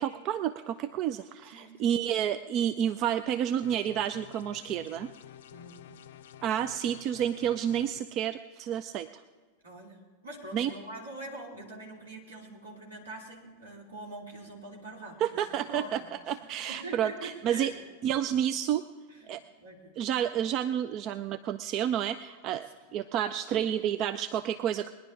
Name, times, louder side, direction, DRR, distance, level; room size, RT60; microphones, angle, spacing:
voice 1, 0.0-5.1 6.4-9.2 10.5-10.7 15.2-16.0 16.3-17.7 18.0-18.9 19.3-19.4 20.0-22.7 22.9-24.9, right 10 dB, 35° right, 13 dB, 0.4 m, -30 dB
voice 2, 1.5-1.8 5.5-5.9 9.6-16.1 16.4-17.8 19.1-20.0 22.7-22.8, right 2 dB, 70° right, -1 dB, 2.8 m, -44 dB
sound 1, 3.6-8.0, left 10 dB, 60° left, 0.5 m, -50 dB
20.5 x 10.5 x 3.7 m, 1.5 s
figure-of-eight pair, 90°, 0 cm